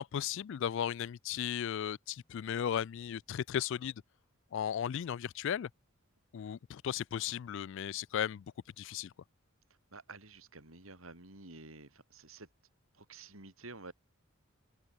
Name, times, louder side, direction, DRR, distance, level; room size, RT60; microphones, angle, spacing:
voice 1, 0.0-3.9 4.5-5.7 6.3-8.5 8.8-9.1, left 9 dB, 65° left, 0.3 m, -35 dB
voice 2, 9.9-12.5 12.9-13.9, right 3 dB, 85° right, 4.3 m, -51 dB
open air
head